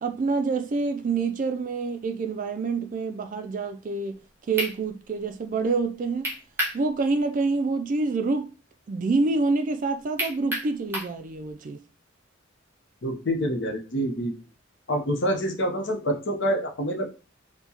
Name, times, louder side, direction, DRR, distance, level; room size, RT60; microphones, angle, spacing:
voice 1, 0.0-4.2 4.5-6.3 6.7-8.5 8.9-11.8, right 3 dB, 45° right, 0.3 m, -27 dB
sound 1, 4.2-4.3 4.6-4.8 6.2-6.8 7.2-7.3 10.2-11.2, equal, 10° right, 1.1 m, -29 dB
voice 2, 13.0-14.3 14.9-17.1, equal, 65° left, 0.7 m, -26 dB
4.5 x 2.2 x 2.8 m
head